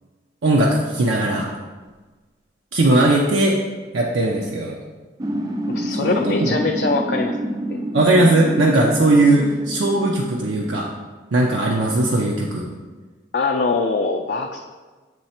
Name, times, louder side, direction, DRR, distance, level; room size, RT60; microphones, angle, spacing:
voice 1, 0.4-1.5 2.7-3.6 3.9-4.8 6.0-6.6 7.9-10.9 11.3-12.7, right 2 dB, 80° right, -1 dB, 0.6 m, -18 dB
sound 1, 5.2-10.8, right 1 dB, 20° right, 0.3 m, -28 dB
voice 2, 5.7-7.4 13.3-14.6, left 3 dB, 55° left, 2 dB, 0.4 m, -22 dB
7.6 x 3.2 x 4.3 m, 1.3 s
head